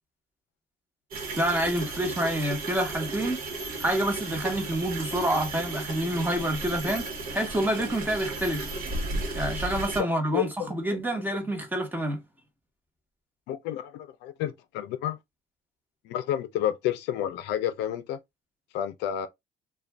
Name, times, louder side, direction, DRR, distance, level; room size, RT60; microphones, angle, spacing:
sound 1, 1.1-10.0, right 3 dB, 60° right, 1.1 m, -34 dB
voice 1, 1.4-3.4 3.8-8.8 9.3-12.2, right 1 dB, 10° right, 1.0 m, -28 dB
voice 2, 10.3-10.7 13.5-15.2 16.0-18.2 18.7-19.3, left 11 dB, 90° left, 0.5 m, -30 dB
2.5 x 2.3 x 3.3 m
cardioid pair, 110°, 17 cm